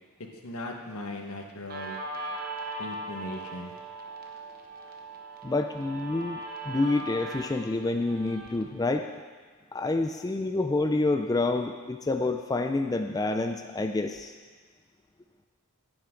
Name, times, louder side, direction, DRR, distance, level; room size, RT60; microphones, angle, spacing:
voice 1, 0.4-2.0 2.8-3.7, left 1 dB, 80° left, 2 dB, 1.5 m, -38 dB
Guitar, 1.7-8.7, right 2 dB, 40° right, 1.3 m, -39 dB
voice 2, 5.4-6.4 6.7-9.1 9.7-14.3, left 2 dB, 15° left, 5 dB, 0.3 m, -28 dB
16.0 x 8.9 x 3.8 m, 1.5 s
head